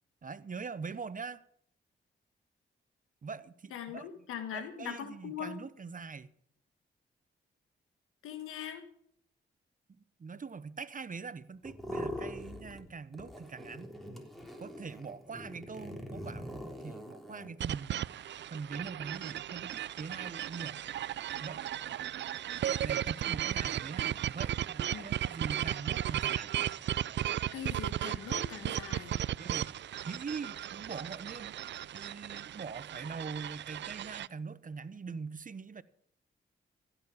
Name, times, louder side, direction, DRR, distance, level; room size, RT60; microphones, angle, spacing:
voice 1, 0.2-1.4 3.2-4.1 4.5-6.3 9.9-14.0 14.6-18.0 18.5-20.8 21.4-21.7 22.8-26.5 29.4-29.7 30.1-35.8, right 5 dB, 40° right, 0.9 m, -43 dB
voice 2, 3.7-5.6 8.2-8.8 24.9-25.1 27.5-29.2, left 8 dB, 90° left, 1.7 m, -41 dB
sound 1, 11.6-12.9 13.1-17.5, equal, ahead, 3.5 m, -43 dB
sound 2, 17.6-34.3, right 11 dB, 60° right, 0.4 m, -35 dB
15.5 x 7.1 x 7.0 m
supercardioid pair, 50°, 21 cm